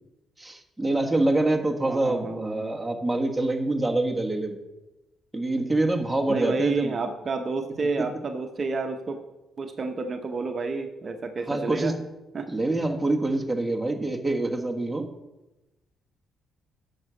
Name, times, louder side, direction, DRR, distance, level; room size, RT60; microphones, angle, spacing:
voice 1, 0.4-4.6 5.3-6.9 8.0-8.1 11.5-11.9 12.5-15.1, right 2 dB, 5° right, 1 dB, 1.4 m, -25 dB
voice 2, 1.8-2.6 6.3-9.2 9.6-11.9 12.3-12.5, right 4 dB, 40° right, 5 dB, 0.9 m, -30 dB
9.3 x 6.8 x 6.2 m, 1.0 s
cardioid pair, 90°, 0 cm